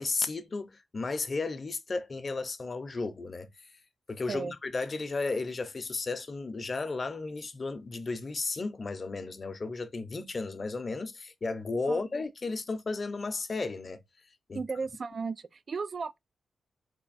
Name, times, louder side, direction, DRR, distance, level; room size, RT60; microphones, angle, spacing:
voice 1, 0.0-3.5 4.1-14.0 14.5-14.6, left 3 dB, 40° left, 0.6 m, -34 dB
voice 2, 14.5-16.2, right 4 dB, 50° right, 0.3 m, -35 dB
3.9 x 3.4 x 2.5 m
cardioid pair, 70°, 0 cm